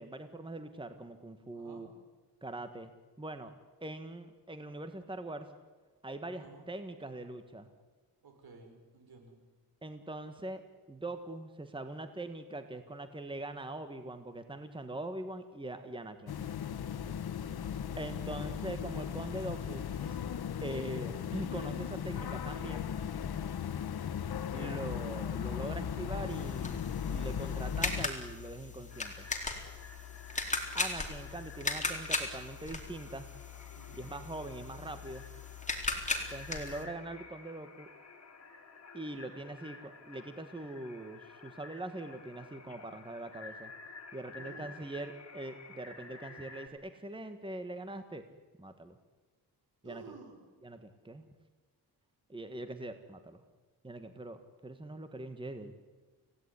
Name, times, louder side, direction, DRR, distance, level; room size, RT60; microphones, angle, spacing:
voice 1, 0.0-1.9 2.4-2.9 3.2-3.5 3.8-5.5 6.0-7.7 9.8-10.6 10.9-16.4 18.0-20.2 20.6-22.9 24.5-29.3 30.7-33.3 34.0-35.2 36.3-37.9 38.9-43.7 44.1-48.2 48.6-49.0 49.8-50.0 50.6-51.3 52.3-53.4 53.8-55.7, right 2 dB, 15° right, 9 dB, 1.7 m, -42 dB
voice 2, 1.5-1.9 6.4-6.7 8.2-9.4 17.0-17.4 33.7-34.0 44.3-44.9 49.8-50.4, right 4 dB, 70° right, 4 dB, 6.8 m, -53 dB
sound 1, 16.3-28.1, left 8 dB, 70° left, 1.4 m, -37 dB
sound 2, 26.3-36.8, left 3 dB, 20° left, 4.3 m, -38 dB
sound 3, 28.9-46.7, left 4 dB, 40° left, 4.6 m, -52 dB
29.0 x 17.5 x 9.9 m, 1.3 s
wide cardioid pair, 115°, 39 cm